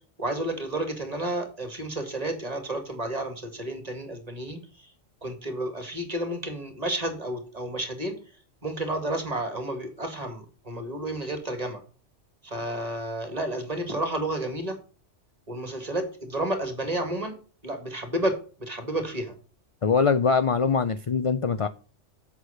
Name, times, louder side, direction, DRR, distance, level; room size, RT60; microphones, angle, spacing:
voice 1, 0.2-4.6 5.2-8.2 8.6-11.8 12.4-14.8 15.5-17.4 17.6-19.3, right 1 dB, 30° right, 2.1 m, -31 dB
voice 2, 19.8-21.7, left 5 dB, 50° left, 0.4 m, -23 dB
8.2 x 6.1 x 6.5 m
omnidirectional pair, 1.3 m